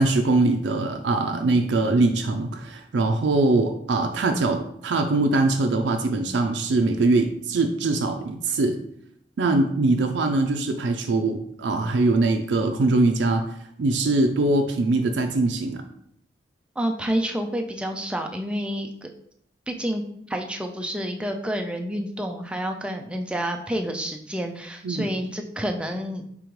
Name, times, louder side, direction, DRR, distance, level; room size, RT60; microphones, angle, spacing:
voice 1, 0.0-8.8 9.4-13.4 13.8-15.8 24.8-25.1, right 2 dB, 80° right, 4 dB, 0.4 m, -22 dB
voice 2, 16.8-19.1 19.7-20.0 20.3-26.2, equal, 5° right, 3 dB, 0.3 m, -29 dB
5.0 x 3.4 x 3.1 m, 0.70 s
head